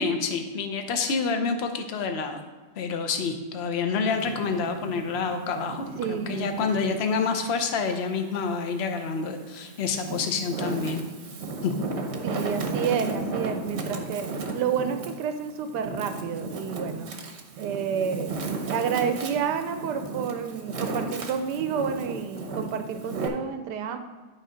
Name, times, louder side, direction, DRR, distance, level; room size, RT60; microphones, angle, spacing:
voice 1, 0.0-2.4 2.8-11.0 11.6-11.8, left 5 dB, 50° left, 6 dB, 0.8 m, -28 dB
Wind, 4.1-6.9 7.4-8.7 9.3-23.3, right 3 dB, 50° right, 1.0 m, -35 dB
voice 2, 6.0-7.0 12.2-17.1 17.6-24.0, right 7 dB, 90° right, 8 dB, 1.3 m, -30 dB
11.0 x 4.0 x 5.0 m, 1.3 s
omnidirectional pair, 1.8 m